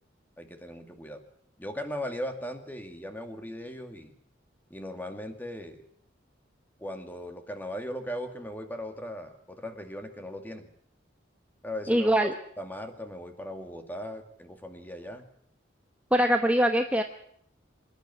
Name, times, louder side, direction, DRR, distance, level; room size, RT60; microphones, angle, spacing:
voice 1, 0.4-1.2 1.6-4.2 4.7-5.8 6.8-10.7 11.6-12.1 12.6-15.3, equal, 10° left, 6 dB, 2.1 m, -38 dB
voice 2, 11.9-12.3 16.1-17.0, equal, 5° right, 4 dB, 1.0 m, -22 dB
26.0 x 10.5 x 9.6 m, 0.67 s
head